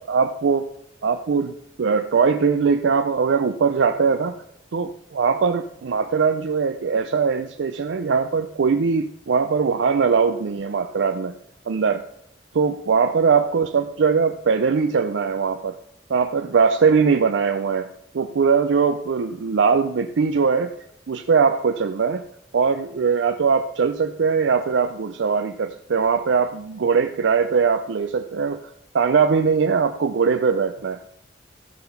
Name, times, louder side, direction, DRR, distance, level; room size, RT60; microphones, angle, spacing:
voice 1, 0.1-0.6 1.0-4.4 4.7-11.3 11.7-12.0 12.5-15.8 16.1-20.7 21.1-22.2 22.5-28.6 28.9-31.0, right 5 dB, 85° right, 7 dB, 0.5 m, -21 dB
14.0 x 5.7 x 5.6 m, 0.74 s
head